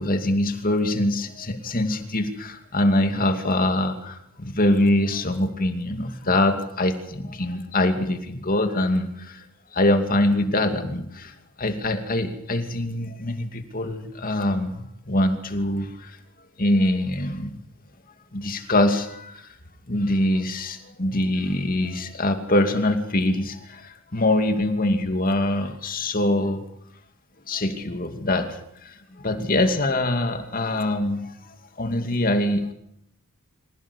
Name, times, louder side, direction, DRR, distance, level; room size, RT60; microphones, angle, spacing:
voice 1, 0.0-9.5 9.7-16.2 16.6-17.6 18.3-19.5 19.9-26.6 27.5-32.7, left 1 dB, 40° left, 6 dB, 2.6 m, -24 dB
26.0 x 17.0 x 8.3 m, 0.78 s
head